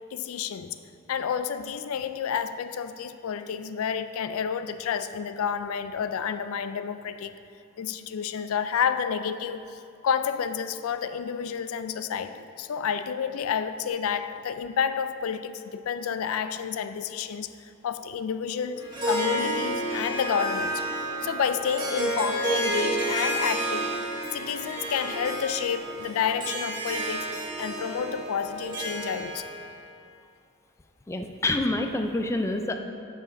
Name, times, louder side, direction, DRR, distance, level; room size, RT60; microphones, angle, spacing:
voice 1, 0.1-0.7 1.1-7.3 7.8-17.5 17.8-20.8 21.2-23.9 24.3-27.3 27.6-29.5, left 7 dB, 85° left, 11 dB, 0.4 m, -30 dB
Harp, 18.8-29.7, right 1 dB, 20° right, 1.8 m, -30 dB
voice 2, 31.1-32.7, left 2 dB, 15° left, 5 dB, 0.4 m, -27 dB
7.9 x 5.0 x 5.1 m, 2.6 s
head